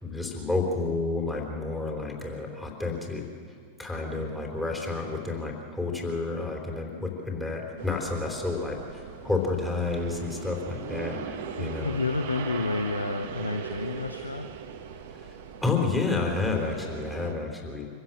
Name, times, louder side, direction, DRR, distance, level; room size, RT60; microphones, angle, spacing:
voice 1, 0.0-3.2 3.8-11.2 11.6-12.0 15.2-15.4 15.6-17.9, left 3 dB, 5° left, 1 dB, 3.8 m, -30 dB
sound 1, 7.8-17.3, right 7 dB, 55° right, 1.5 m, -39 dB
voice 2, 11.6-14.5, left 3 dB, 80° left, 6 dB, 1.0 m, -30 dB
25.5 x 16.0 x 7.3 m, 2.1 s
figure-of-eight pair, 90°, 0 cm